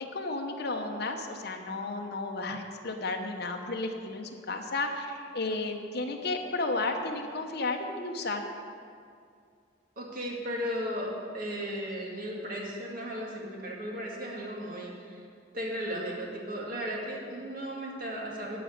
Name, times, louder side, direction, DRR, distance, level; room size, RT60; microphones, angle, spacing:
voice 1, 0.1-8.4, left 2 dB, 55° left, 3 dB, 1.0 m, -33 dB
voice 2, 10.0-15.3 15.5-18.6, equal, 50° right, -2 dB, 2.0 m, -35 dB
12.0 x 5.1 x 8.0 m, 2.3 s
head